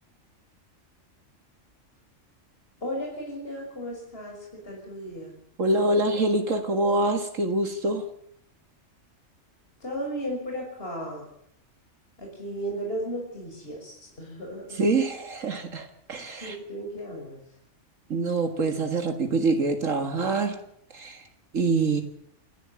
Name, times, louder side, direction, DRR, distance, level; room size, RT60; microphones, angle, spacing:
voice 1, 2.8-5.3 9.8-11.3 12.2-14.8 16.4-17.4, equal, 45° left, -1 dB, 6.2 m, -35 dB
voice 2, 5.6-8.1 14.7-16.6 18.1-20.6 20.9-21.3 21.5-22.0, right 2 dB, 75° right, 6 dB, 2.3 m, -25 dB
28.0 x 11.5 x 8.7 m, 0.72 s
omnidirectional pair, 1.4 m